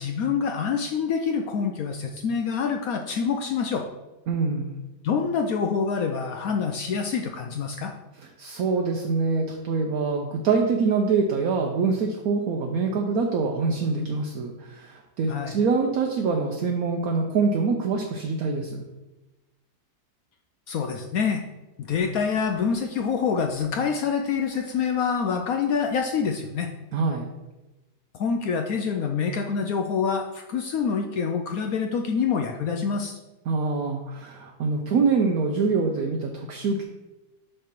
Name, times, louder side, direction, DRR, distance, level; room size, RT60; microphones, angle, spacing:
voice 1, 0.0-3.8 5.0-7.9 15.3-15.6 20.7-21.4 21.8-26.7 28.2-33.2, left 6 dB, 70° left, 3 dB, 0.9 m, -26 dB
voice 2, 4.3-4.7 8.4-18.8 26.9-27.3 33.5-36.8, right 4 dB, 65° right, 2 dB, 1.1 m, -25 dB
6.5 x 3.3 x 5.9 m, 1.0 s
omnidirectional pair, 1.8 m